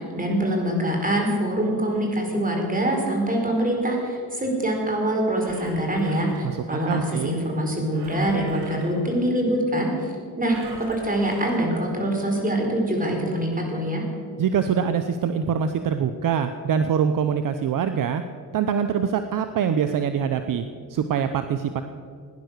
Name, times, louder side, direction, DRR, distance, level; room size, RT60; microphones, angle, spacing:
voice 1, 0.0-14.0, right 1 dB, 20° right, 1 dB, 4.7 m, -24 dB
Engine, 5.1-7.0 7.9-9.1 10.4-11.8 12.5-12.6, right 2 dB, 80° right, 4.6 m, -43 dB
voice 2, 6.4-7.4 14.4-18.2 18.5-20.6 20.9-21.8, right 7 dB, 55° right, 9 dB, 0.8 m, -24 dB
17.0 x 10.5 x 6.7 m, 2.2 s
cardioid pair, 85°, 38 cm